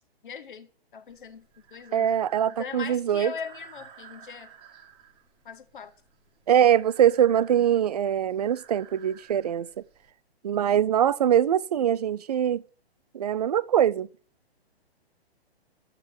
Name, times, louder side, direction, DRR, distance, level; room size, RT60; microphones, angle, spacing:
voice 1, 0.2-2.2 2.5-4.5 5.4-5.9, left 6 dB, 50° left, 1.7 m, -40 dB
Breathing, 1.1-10.1, right 8 dB, 15° right, 1.5 m, -53 dB
voice 2, 1.9-3.3 6.5-9.7 10.4-12.6 13.1-14.1, right 10 dB, 40° right, 0.5 m, -23 dB
11.0 x 8.2 x 6.7 m
figure-of-eight pair, 125°, 32 cm